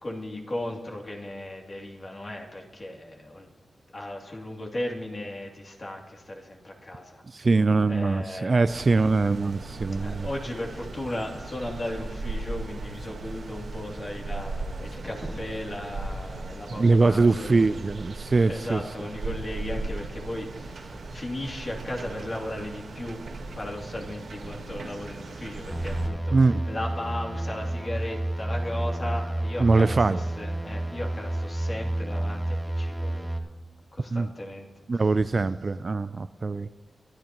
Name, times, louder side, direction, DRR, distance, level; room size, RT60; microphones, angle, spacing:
voice 1, 0.0-3.5 3.9-7.5 7.9-8.8 10.0-17.8 18.2-23.2 23.6-33.3 33.9-34.8 35.3-35.4, left 1 dB, 40° left, -1 dB, 2.7 m, -36 dB
voice 2, 7.3-10.3 16.8-18.8 26.3-26.6 29.6-30.2 34.1-34.3 34.9-36.7, right 3 dB, 45° right, 14 dB, 0.3 m, -22 dB
sound 1, 8.7-26.1, right 3 dB, 70° right, 1.4 m, -37 dB
sound 2, 25.7-33.4, right 1 dB, 5° left, 1.8 m, -30 dB
22.5 x 13.0 x 3.0 m, 1.1 s
wide cardioid pair, 95°, 0 cm